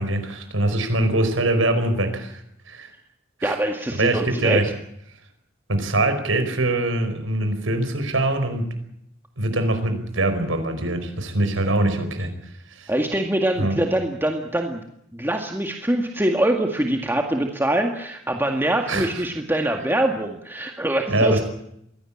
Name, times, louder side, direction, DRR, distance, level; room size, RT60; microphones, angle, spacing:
voice 1, 0.0-2.4 2.7-2.9 3.4-3.6 3.9-4.7 5.7-8.7 9.4-12.3 12.7-12.9 13.6-13.8 18.9-19.2 21.1-21.4, right 2 dB, 80° right, 8 dB, 4.9 m, -23 dB
voice 2, 3.4-4.6 12.9-14.8 15.1-21.4, right 1 dB, 10° right, 3 dB, 1.9 m, -24 dB
23.0 x 17.0 x 8.7 m, 0.75 s
head